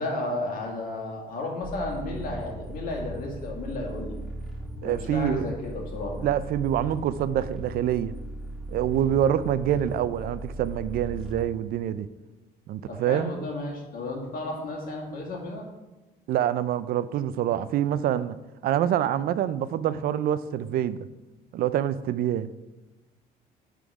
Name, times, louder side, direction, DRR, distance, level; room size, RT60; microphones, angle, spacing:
voice 1, 0.0-4.1 4.8-6.2 12.9-15.7, left 2 dB, 55° left, 0 dB, 1.9 m, -33 dB
sound 1, 1.6-11.4, right 1 dB, ahead, 1.4 m, -38 dB
voice 2, 4.8-5.5 6.2-8.1 8.7-12.1 12.7-13.3 16.3-18.3 18.6-21.0 21.5-22.5, right 10 dB, 60° right, 15 dB, 0.4 m, -26 dB
8.5 x 3.8 x 4.8 m, 1.1 s
cardioid pair, 110°, 17 cm